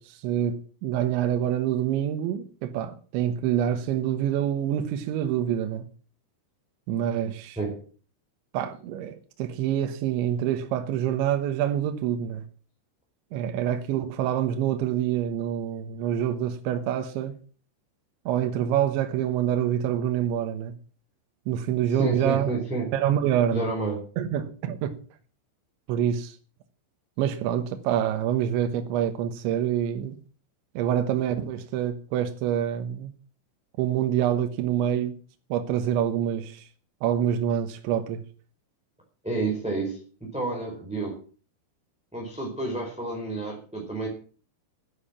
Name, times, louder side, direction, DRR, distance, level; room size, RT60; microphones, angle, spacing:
voice 1, 0.0-5.9 6.9-7.6 8.5-12.4 13.3-17.4 18.3-20.7 21.5-22.5 22.9-23.6 24.2-24.9 25.9-26.4 27.2-30.2 30.7-33.1 33.8-35.2 35.5-36.7 37.0-38.2, right 10 dB, 75° right, 3.3 m, -26 dB
voice 2, 21.9-22.9 23.5-24.0 39.2-40.0 40.3-41.2 42.1-44.1, right 3 dB, ahead, 3.9 m, -30 dB
12.0 x 10.5 x 7.3 m
omnidirectional pair, 5.7 m